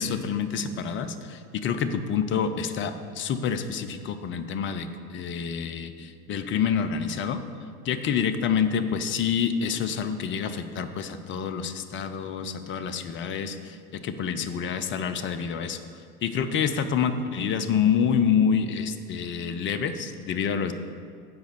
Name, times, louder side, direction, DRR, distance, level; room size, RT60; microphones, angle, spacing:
voice 1, 0.0-7.4 7.8-15.8 16.2-20.7, left 7 dB, 25° left, 10 dB, 0.5 m, -27 dB
7.8 x 5.0 x 6.9 m, 2.2 s
hypercardioid pair, 80°, 46 cm